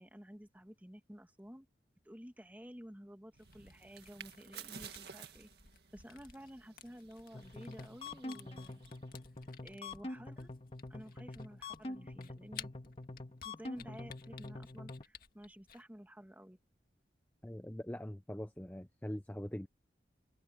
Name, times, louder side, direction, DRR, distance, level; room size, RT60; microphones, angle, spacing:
voice 1, 0.0-1.7 2.0-5.5 5.9-8.8 9.6-10.5 10.9-12.7 13.4-16.6, equal, 10° right, 1.8 m, -52 dB
Camera, 3.3-15.8, left 8 dB, 55° left, 2.0 m, -56 dB
sound 1, 3.3-9.1, right 7 dB, 65° right, 2.0 m, -54 dB
sound 2, 7.3-15.0, left 2 dB, 35° left, 1.7 m, -46 dB
voice 2, 17.4-19.7, left 1 dB, 10° left, 0.6 m, -42 dB
head